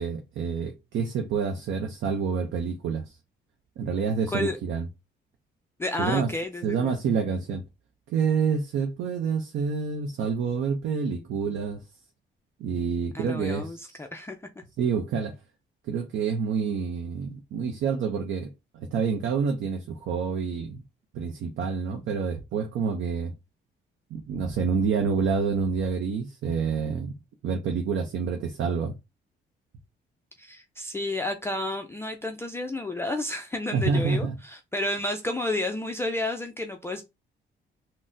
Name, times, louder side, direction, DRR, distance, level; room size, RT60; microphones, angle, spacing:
voice 1, 0.0-3.2 3.8-4.9 6.0-6.3 6.6-7.6 8.1-11.9 12.6-14.0 14.8-15.4 15.8-20.8 21.1-23.3 24.1-27.1 27.4-28.9 33.7-34.3, right 5 dB, 75° right, 0.5 m, -28 dB
voice 2, 5.8-6.9 13.1-14.4 30.4-37.0, left 2 dB, 10° left, 0.3 m, -31 dB
3.9 x 2.0 x 2.6 m
cardioid pair, 90°, 20 cm